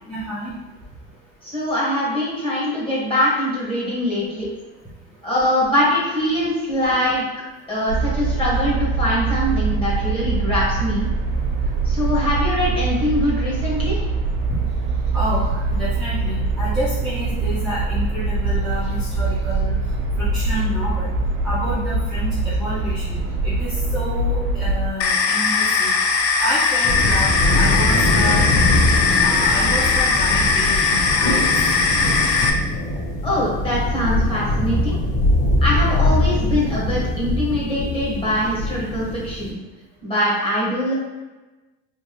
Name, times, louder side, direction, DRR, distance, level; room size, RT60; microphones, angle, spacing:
voice 1, 0.1-0.5 4.4-4.5 14.5-14.6 15.1-19.8 20.2-21.1 21.4-25.9 26.4-28.5 29.2-31.5, equal, ahead, -12 dB, 0.7 m, -29 dB
voice 2, 1.4-4.4 5.2-7.2 7.7-11.1 11.8-14.0 33.2-35.0 35.6-39.6 40.0-40.9, left 1 dB, 20° left, -6 dB, 1.3 m, -22 dB
sound 1, 7.9-24.9, right 3 dB, 70° right, 1.2 m, -23 dB
sound 2, 25.0-32.5, left 4 dB, 50° left, 0.5 m, -19 dB
sound 3, 26.8-39.5, left 1 dB, 85° left, 1.3 m, -22 dB
3.5 x 2.7 x 3.0 m, 1.1 s
cardioid pair, 145°, 30 cm